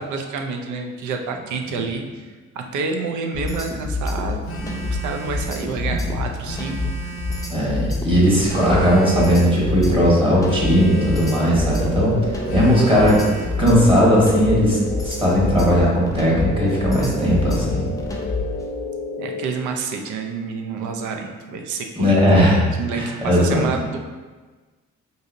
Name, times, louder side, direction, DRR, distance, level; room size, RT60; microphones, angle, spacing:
voice 1, 0.0-7.2 19.2-22.2 22.7-24.0, right 4 dB, 75° right, 4 dB, 0.5 m, -29 dB
sound 1, 3.3-18.6, left 3 dB, 10° left, 0.5 m, -27 dB
Telephone, 4.4-5.6 6.4-7.6 8.4-9.6 10.4-11.6 12.5-13.6, right 3 dB, 45° left, 0.6 m, -34 dB
voice 2, 7.5-13.2 13.6-14.8 15.0-17.9 21.9-22.6 22.9-23.7, equal, 15° right, -6 dB, 1.2 m, -17 dB
sound 2, 8.5-19.4, right 1 dB, 60° right, 1.1 m, -31 dB
3.9 x 2.7 x 2.5 m, 1.3 s
cardioid pair, 90°, 30 cm